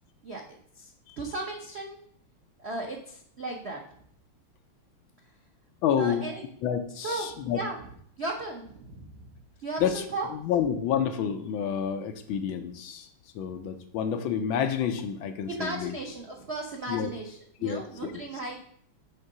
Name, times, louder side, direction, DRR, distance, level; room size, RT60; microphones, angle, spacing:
voice 1, 0.8-2.0 2.6-3.8 6.0-6.4 7.0-7.8 8.2-9.1 9.6-10.3 15.5-18.6, right 2 dB, 85° right, 0 dB, 0.5 m, -36 dB
voice 2, 5.8-6.2 6.6-7.6 9.8-10.0 10.3-13.1 13.3-16.0 16.9-17.1 17.6-17.9, left 8 dB, 75° left, 8 dB, 1.4 m, -29 dB
7.7 x 3.6 x 5.4 m, 0.65 s
omnidirectional pair, 2.4 m